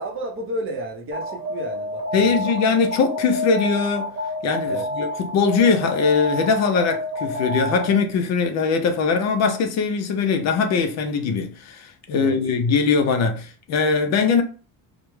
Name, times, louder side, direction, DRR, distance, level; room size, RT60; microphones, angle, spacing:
voice 1, 0.0-2.5 4.7-4.9 12.1-12.4, right 1 dB, 40° right, 0.6 m, -32 dB
Alarm, 1.1-8.2, left 1 dB, 90° right, 0.9 m, -29 dB
voice 2, 2.1-4.1 4.4-14.4, left 5 dB, 55° left, 0.4 m, -21 dB
2.2 x 2.0 x 3.0 m
cardioid pair, 175°, 33 cm